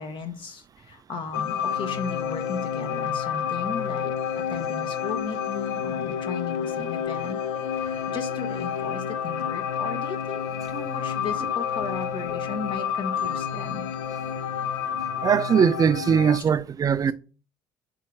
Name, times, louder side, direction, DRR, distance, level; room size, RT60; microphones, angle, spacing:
voice 1, 0.0-4.1 4.5-7.4 7.7-13.9, left 5 dB, 55° left, 1.0 m, -36 dB
sound 1, 1.3-16.4, left 8 dB, 80° left, 0.6 m, -29 dB
voice 2, 15.2-17.1, right 7 dB, 35° right, 0.5 m, -20 dB
5.5 x 3.7 x 4.6 m
hypercardioid pair, 65°, 10 cm